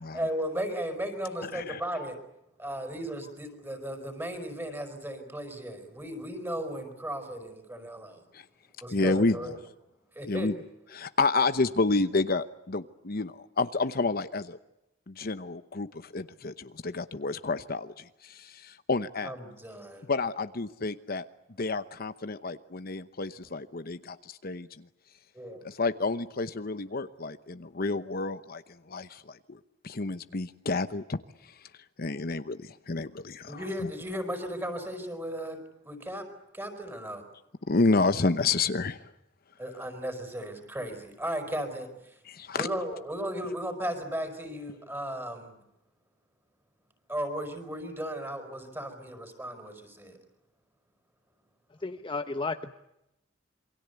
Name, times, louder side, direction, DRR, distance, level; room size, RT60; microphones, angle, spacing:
voice 1, 0.1-2.2 2.6-8.2 8.8-9.6 10.2-10.5 19.2-20.1 23.5-23.6 25.3-25.6 33.5-35.6 35.8-36.3 36.5-37.2 39.6-42.2 42.6-45.6 47.1-50.2, equal, 10° right, 7 dB, 5.1 m, -35 dB
voice 2, 8.9-9.4 10.3-10.5 10.9-14.6 15.1-19.3 20.1-21.3 21.6-24.7 25.6-28.6 28.9-29.4 29.8-31.2 32.0-33.6 37.7-39.0 42.3-42.7, left 3 dB, 50° left, 11 dB, 0.9 m, -29 dB
voice 3, 51.8-52.8, left 3 dB, 25° left, 7 dB, 1.0 m, -33 dB
28.0 x 24.0 x 8.2 m, 0.87 s
head